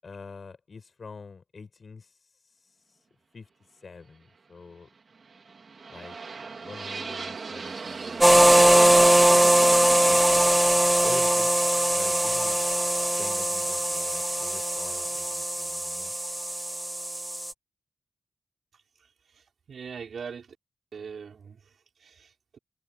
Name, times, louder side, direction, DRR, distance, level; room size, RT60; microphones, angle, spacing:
voice 1, 0.0-3.0 3.3-4.9 5.9-6.2 6.5-8.6 10.0-12.7 13.2-16.1, left 4 dB, 45° left, 7.0 m, -46 dB
sound 1, 5.1-13.1, right 4 dB, 45° right, 2.6 m, -38 dB
sound 2, 8.2-17.5, right 1 dB, 10° right, 1.1 m, -21 dB
voice 2, 18.7-20.6 20.9-22.6, right 6 dB, 65° right, 5.4 m, -43 dB
wide cardioid pair, 145°, 0 cm